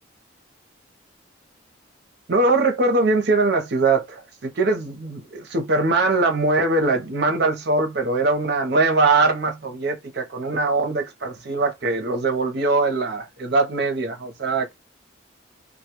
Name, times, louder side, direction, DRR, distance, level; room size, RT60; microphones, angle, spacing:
voice 1, 2.3-14.7, right 3 dB, 55° right, 0.6 m, -21 dB
2.2 x 2.1 x 2.8 m
head